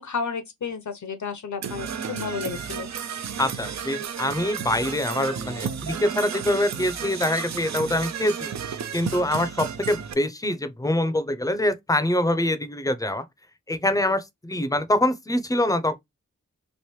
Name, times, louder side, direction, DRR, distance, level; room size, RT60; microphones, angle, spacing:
voice 1, 0.0-2.9, left 5 dB, 65° left, 0.8 m, -32 dB
Percussion / Brass instrument, 1.6-10.1, right 7 dB, 60° right, 0.5 m, -33 dB
voice 2, 3.4-8.5 8.9-13.3 13.7-16.0, left 1 dB, 10° left, 0.6 m, -24 dB
3.1 x 2.6 x 3.1 m
cardioid pair, 45°, 31 cm